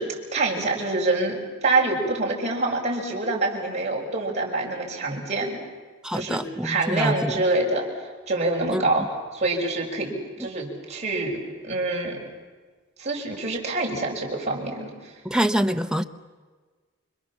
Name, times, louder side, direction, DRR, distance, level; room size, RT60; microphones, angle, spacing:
voice 1, 0.0-5.6 6.1-7.9 8.3-12.2 13.0-15.1, right 2 dB, 35° right, -2 dB, 6.1 m, -26 dB
voice 2, 6.0-7.3 8.7-8.8 15.2-16.0, equal, 5° right, 6 dB, 0.9 m, -25 dB
30.0 x 25.0 x 7.4 m, 1.4 s
head